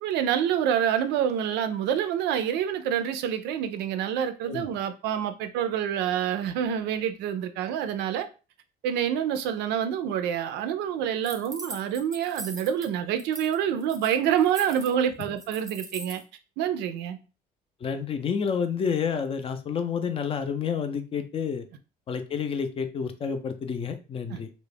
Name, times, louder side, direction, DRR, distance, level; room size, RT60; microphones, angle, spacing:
voice 1, 0.0-8.3 8.8-16.2 16.6-17.2 24.3-24.4, right 9 dB, 85° right, 0.4 m, -27 dB
sound 1, 11.2-12.9 13.2-13.6 13.8-16.2, right 2 dB, 20° right, 0.5 m, -40 dB
voice 2, 17.8-21.6 22.1-24.5, left 6 dB, 35° left, 0.4 m, -29 dB
2.3 x 2.1 x 3.2 m
cardioid pair, 110°, 17 cm